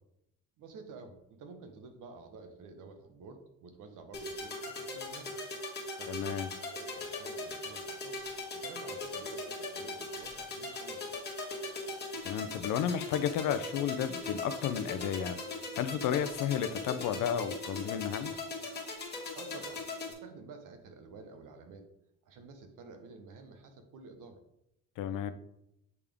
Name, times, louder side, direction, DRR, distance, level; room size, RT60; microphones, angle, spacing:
voice 1, 0.6-5.4 6.0-8.2 8.5-11.2 19.3-19.8 20.1-21.9 22.2-24.4 25.1-25.3, right 4 dB, 70° right, 6 dB, 1.0 m, -51 dB
sound 1, 4.1-20.1, left 3 dB, 30° left, 1.6 m, -40 dB
voice 2, 6.1-6.5 12.2-15.4 15.8-18.4 25.0-25.3, left 9 dB, 75° left, 11 dB, 0.5 m, -32 dB
8.2 x 3.5 x 3.5 m, 0.83 s
cardioid pair, 135°, 33 cm